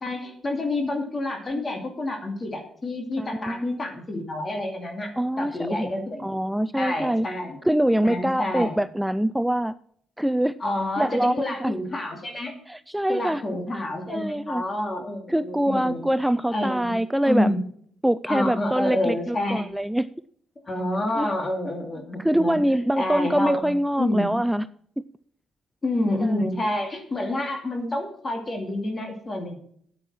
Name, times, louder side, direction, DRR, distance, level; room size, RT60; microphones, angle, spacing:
voice 1, 0.0-6.3 6.8-7.6 8.0-8.7 10.6-12.5 13.1-16.1 16.5-16.9 17.2-17.6 18.3-19.7 20.6-22.6 23.0-24.4 25.8-29.6, left 1 dB, 30° left, 4 dB, 2.4 m, -28 dB
voice 2, 3.2-3.8 5.2-7.3 7.6-9.7 10.2-10.5 11.0-11.8 12.7-13.4 14.1-14.6 15.3-17.5 18.0-20.1 21.2-21.3 22.2-24.7 26.2-26.4, right 1 dB, 5° right, 14 dB, 0.4 m, -24 dB
9.2 x 8.9 x 6.0 m, 0.63 s
cardioid pair, 90°, 0 cm